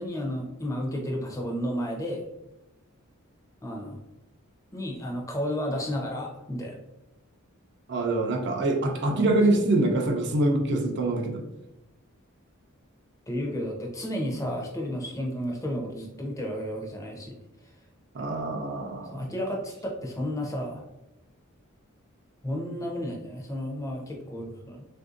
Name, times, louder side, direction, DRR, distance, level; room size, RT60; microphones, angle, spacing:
voice 1, 0.0-2.2 3.6-4.0 4.7-6.8 9.1-9.3 9.6-9.7 13.3-17.4 19.1-20.8 22.4-24.9, equal, 15° left, 1 dB, 0.5 m, -32 dB
voice 2, 7.9-11.4 18.1-19.3, right 2 dB, 55° right, 3 dB, 0.5 m, -25 dB
3.4 x 2.6 x 2.4 m, 0.96 s
head